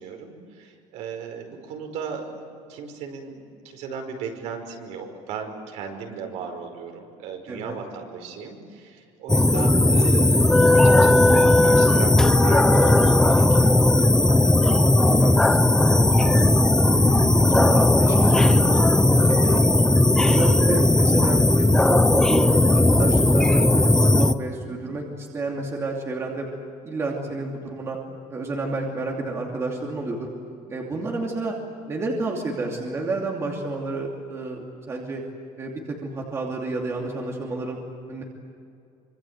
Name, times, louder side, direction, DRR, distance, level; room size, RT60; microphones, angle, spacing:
voice 1, 0.0-2.2 2.7-14.5 16.5-16.6 19.2-19.6 24.5-24.8 27.2-27.3 28.8-29.0 30.9-31.2, right 6 dB, 60° right, 4 dB, 5.3 m, -36 dB
sound 1, 9.3-24.3, left 1 dB, 5° left, 0.6 m, -17 dB
voice 2, 15.1-15.6 15.9-16.0 16.9-18.7 19.1-19.6 20.2-26.5 26.8-28.0 28.3-30.3 30.7-31.5 31.9-35.2 35.6-37.8 38.1-38.2, right 3 dB, 20° right, 0 dB, 2.7 m, -30 dB
26.5 x 25.5 x 8.1 m, 2.4 s
cardioid pair, 175°, 13 cm